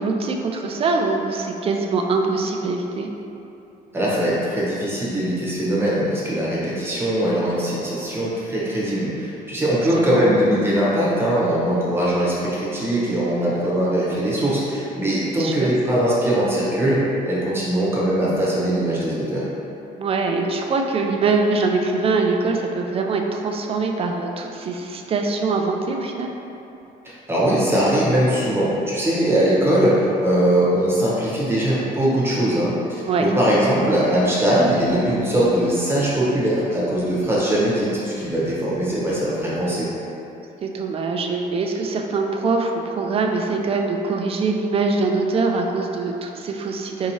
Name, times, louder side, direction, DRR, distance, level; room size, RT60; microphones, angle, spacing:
voice 1, 0.0-3.1 9.9-10.4 15.4-15.7 20.0-26.3 33.0-33.3 40.6-47.1, right 3 dB, 35° right, 2 dB, 0.4 m, -23 dB
voice 2, 3.9-19.5 27.0-39.9, right 1 dB, 15° right, -7 dB, 1.0 m, -21 dB
4.5 x 2.9 x 2.8 m, 2.9 s
cardioid pair, 110°, 17 cm